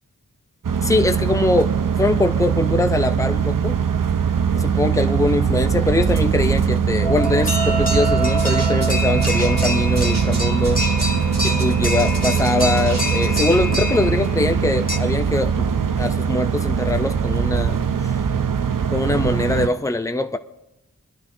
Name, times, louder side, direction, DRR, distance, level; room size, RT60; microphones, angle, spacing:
sound 1, 0.6-19.7, right 6 dB, 70° right, 0.6 m, -21 dB
voice 1, 0.8-3.8 4.5-10.8 11.4-18.1 18.9-20.4, left 2 dB, 10° left, 0.7 m, -22 dB
sound 2, 7.0-15.0, equal, 25° left, 1.5 m, -26 dB
sound 3, 8.4-13.7, right 1 dB, 50° right, 2.0 m, -36 dB
24.0 x 11.5 x 2.8 m
wide cardioid pair, 55°, 34 cm